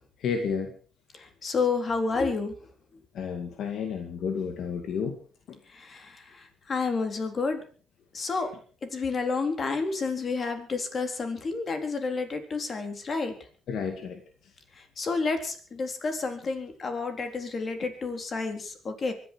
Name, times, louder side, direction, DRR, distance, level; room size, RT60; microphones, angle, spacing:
voice 1, 0.2-0.7 3.1-5.1 5.5-5.6 13.7-14.2, left 6 dB, 70° left, 5 dB, 2.1 m, -31 dB
voice 2, 1.1-2.5 5.7-7.6 8.1-8.5 8.8-13.3 14.8-19.1, left 4 dB, 45° left, 6 dB, 3.8 m, -30 dB
24.5 x 11.0 x 4.7 m, 0.40 s
cardioid pair, 90°, 0 cm